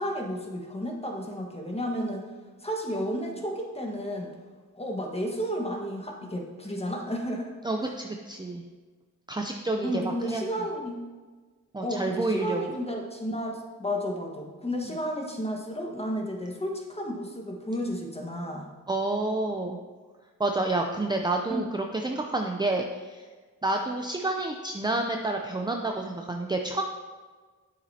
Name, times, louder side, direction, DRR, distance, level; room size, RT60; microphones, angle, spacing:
voice 1, 0.0-2.3 2.6-4.3 4.7-7.5 7.8-7.9 9.8-11.0 11.8-18.7 21.5-21.7, equal, 20° left, 1 dB, 1.5 m, -32 dB
voice 2, 7.6-8.6 9.3-10.4 11.7-12.6 18.9-19.8 20.4-23.2 23.6-26.8, right 2 dB, 15° right, 3 dB, 0.6 m, -29 dB
9.4 x 7.1 x 2.8 m, 1.4 s
cardioid pair, 70°, 33 cm